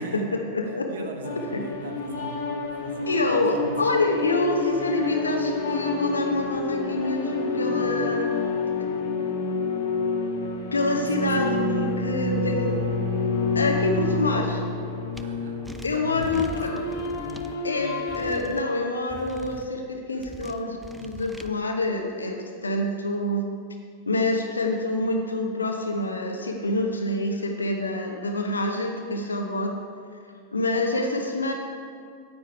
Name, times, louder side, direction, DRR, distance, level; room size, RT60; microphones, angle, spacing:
voice 1, 0.0-0.3 0.9-2.5 2.8-4.0 10.9-11.8 13.4-13.6 15.2-16.6, right 4 dB, 60° right, 4 dB, 1.1 m, -40 dB
voice 2, 0.5-1.1 1.5-1.6 3.1-8.3 10.7-12.8 13.5-14.6 15.8-17.0 17.6-23.4 24.1-29.7 30.5-31.5, left 2 dB, 75° left, 3 dB, 0.8 m, -26 dB
sound 1, 1.2-18.4, left 3 dB, 60° left, 1.5 m, -28 dB
sound 2, 15.1-15.2 15.6-17.5 18.1-18.6 19.1-19.7 20.2-21.5, right 2 dB, 5° right, 0.5 m, -41 dB
9.6 x 9.6 x 4.5 m, 2.2 s
figure-of-eight pair, 90°, 0 cm